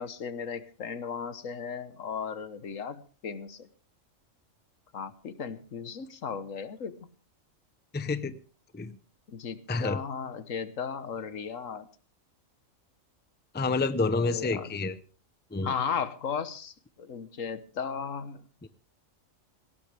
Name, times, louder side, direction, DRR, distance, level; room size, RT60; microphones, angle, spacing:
voice 1, 0.0-3.7 4.9-6.9 9.3-11.9 14.1-14.7 15.6-18.4, left 6 dB, 75° left, 12 dB, 1.5 m, -36 dB
voice 2, 7.9-8.3 8.7-9.0 9.7-10.0 13.5-15.0 15.5-15.7 18.6-18.7, left 3 dB, 10° left, 13 dB, 0.6 m, -28 dB
18.5 x 17.5 x 3.4 m, 0.37 s
omnidirectional pair, 1.4 m